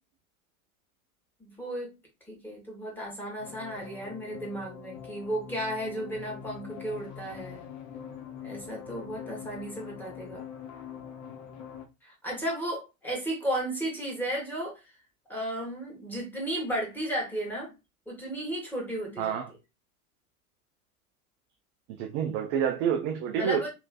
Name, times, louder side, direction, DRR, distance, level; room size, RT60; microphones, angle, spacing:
voice 1, 1.4-1.9 2.3-7.7 8.4-10.4 12.0-14.8 15.3-17.7 18.1-19.4 23.4-23.7, right 1 dB, 5° left, 1.8 m, -34 dB
sound 1, 3.4-11.8, left 8 dB, 45° left, 0.9 m, -43 dB
voice 2, 19.2-19.5 21.9-23.7, right 8 dB, 30° right, 0.4 m, -28 dB
3.1 x 3.1 x 2.4 m
figure-of-eight pair, 90°, 43 cm